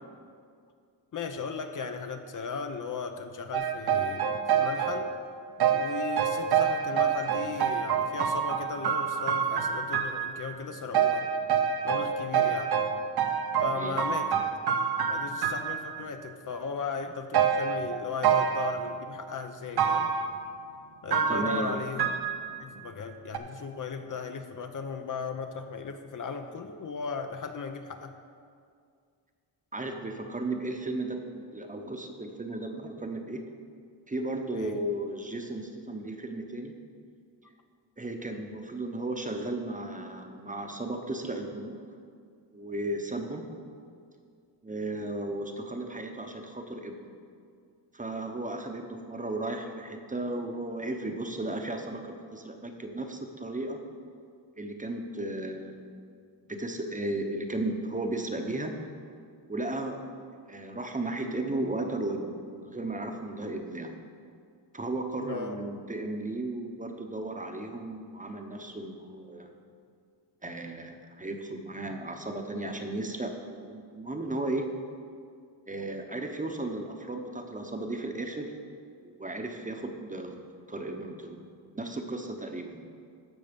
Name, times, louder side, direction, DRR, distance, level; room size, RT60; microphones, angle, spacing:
voice 1, 1.1-5.1 5.7-11.3 11.8-12.7 13.6-14.4 15.1-20.1 21.0-22.1 22.6-28.1 34.5-34.8 65.2-65.6, left 5 dB, 45° left, 7 dB, 0.6 m, -37 dB
sound 1, 3.5-5.1 5.6-10.6 10.9-16.0 17.3-18.7 19.8-20.3 21.1-22.8 23.3-23.4, right 7 dB, 65° right, 0.8 m, -27 dB
voice 2, 13.6-14.0 21.3-21.8 29.7-33.4 34.1-36.7 38.0-41.7 42.5-43.5 44.6-46.9 47.9-53.8 54.6-55.9 56.5-58.7 59.5-60.0 60.5-64.0 64.7-69.5 70.4-74.7 75.7-78.5 79.0-81.4 81.7-82.8, right 2 dB, 20° right, 4 dB, 0.8 m, -35 dB
14.0 x 5.4 x 5.2 m, 2.2 s
cardioid pair, 110°, 42 cm